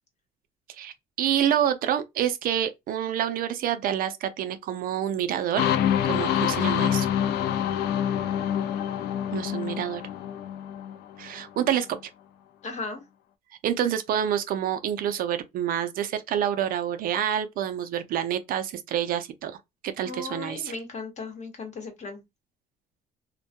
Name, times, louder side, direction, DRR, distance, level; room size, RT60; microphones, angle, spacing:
voice 1, 0.7-5.6 6.1-7.1 9.3-10.0 11.2-12.0 13.6-19.5 19.8-20.7, right 10 dB, 60° right, 0.4 m, -27 dB
sound 1, 5.6-11.3, left 10 dB, 75° left, 0.4 m, -26 dB
voice 2, 12.6-13.0 20.0-22.2, left 4 dB, 45° left, 0.9 m, -36 dB
2.2 x 2.1 x 2.7 m
cardioid pair, 110°, 17 cm